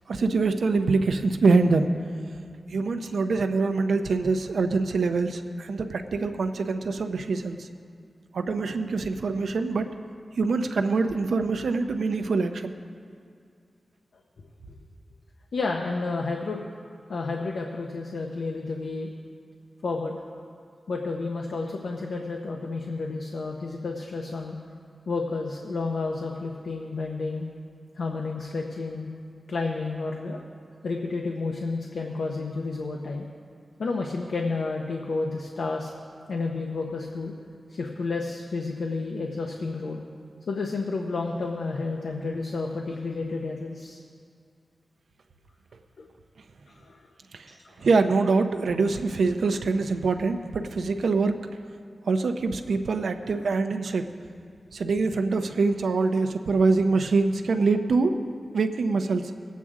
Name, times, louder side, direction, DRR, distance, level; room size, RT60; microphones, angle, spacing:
voice 1, 0.1-1.9 2.7-7.7 8.3-9.9 10.3-12.7 47.3-47.5 47.8-51.4 52.1-54.1 54.7-58.2 58.5-59.3, right 4 dB, 90° right, 7 dB, 0.6 m, -24 dB
voice 2, 15.5-16.7 17.1-19.1 19.8-20.3 20.9-24.6 25.1-27.4 28.0-29.1 29.5-30.4 30.8-33.3 33.8-35.9 36.3-37.3 37.7-40.0 40.5-44.0 46.0-46.1 46.7-47.1 47.5-47.6, left 3 dB, 85° left, 1 dB, 0.8 m, -31 dB
19.0 x 8.3 x 3.7 m, 2.4 s
wide cardioid pair, 110°, 0 cm